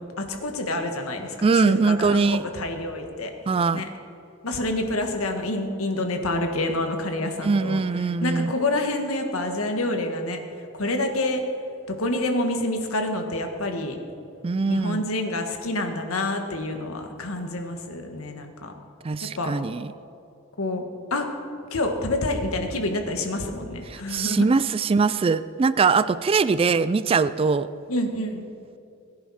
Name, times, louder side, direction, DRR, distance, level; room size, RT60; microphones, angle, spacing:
voice 1, 0.2-3.3 3.7-3.9 4.4-7.8 8.2-11.4 11.9-14.0 14.7-18.7 19.2-19.6 20.6-20.8 21.1-21.3 21.7-24.5 27.9-28.5, left 1 dB, 80° left, 4 dB, 1.6 m, -27 dB
voice 2, 1.4-2.4 3.5-3.8 7.4-8.5 14.4-15.0 19.0-19.9 23.9-27.7, right 4 dB, 25° right, 14 dB, 0.3 m, -22 dB
21.0 x 10.5 x 4.3 m, 2.5 s
head